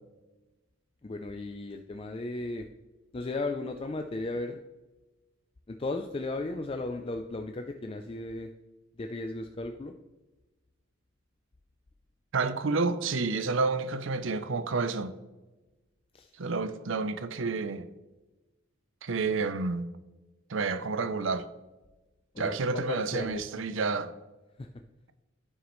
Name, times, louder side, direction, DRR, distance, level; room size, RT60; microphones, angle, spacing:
voice 1, 1.0-2.7 3.1-4.6 5.7-8.5 9.0-9.9 16.1-16.3 22.3-23.5 24.6-24.7, left 2 dB, 25° left, 0.4 m, -35 dB
voice 2, 12.3-15.2 16.4-17.9 19.0-19.9 20.5-21.5 22.4-24.1, right 4 dB, 65° right, 0.6 m, -29 dB
11.0 x 6.3 x 3.1 m
head